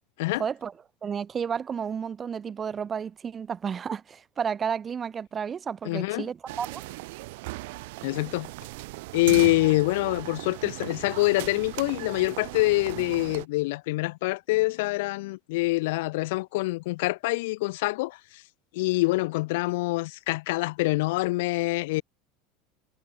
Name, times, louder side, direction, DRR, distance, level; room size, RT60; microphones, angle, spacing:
voice 1, 0.4-0.7 1.0-6.8, right 7 dB, 20° right, 0.6 m, -32 dB
voice 2, 5.8-6.3 8.0-8.5 9.1-18.4 18.7-22.0, left 22 dB, 75° left, 0.4 m, -25 dB
sound 1, 6.5-13.5, right 22 dB, 75° right, 0.7 m, -38 dB
supercardioid pair, 150°, 0 cm